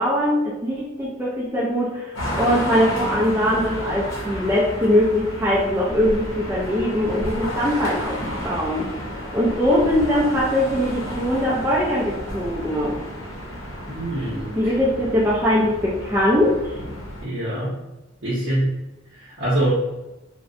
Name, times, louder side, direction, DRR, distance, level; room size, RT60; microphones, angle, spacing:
voice 1, 0.0-8.2 8.4-8.9 9.3-13.0 14.6-16.8, equal, 10° right, -8 dB, 0.3 m, -21 dB
sound 1, 2.1-17.2, equal, 70° left, 0.7 m, -32 dB
voice 2, 13.9-14.7 17.2-17.7 18.2-18.8 19.1-19.7, right 1 dB, 55° right, -9 dB, 0.7 m, -24 dB
2.6 x 2.0 x 2.5 m, 1.0 s
head